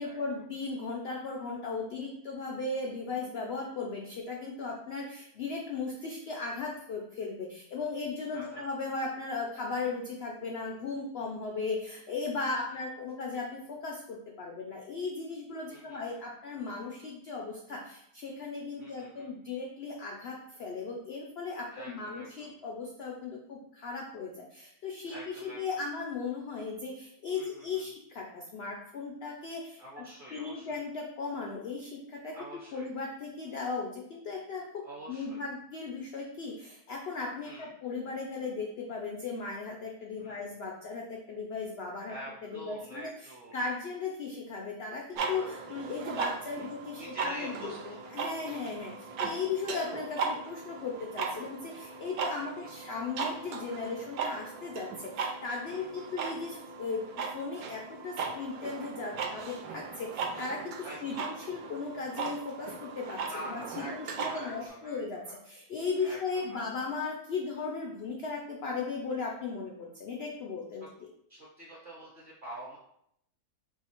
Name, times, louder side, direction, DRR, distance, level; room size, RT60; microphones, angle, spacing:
voice 1, 0.0-30.0 30.3-32.4 32.7-34.6 35.1-42.2 42.4-57.0 57.3-70.8, left 4 dB, 85° left, 0 dB, 0.5 m, -37 dB
voice 2, 8.3-8.7 12.5-12.8 15.7-16.2 18.8-19.3 21.7-22.5 25.1-25.8 27.3-27.9 29.8-30.8 32.3-32.9 34.8-35.4 37.4-37.7 40.2-40.5 42.0-43.6 46.5-48.0 48.7-49.1 52.4-52.7 55.7-56.2 60.8-61.4 63.2-65.4 66.0-66.7 71.3-72.8, right 1 dB, 40° right, -6 dB, 0.9 m, -46 dB
sound 1, 45.2-64.7, right 5 dB, 75° right, 1.0 m, -38 dB
3.1 x 2.7 x 4.3 m, 0.74 s
omnidirectional pair, 1.7 m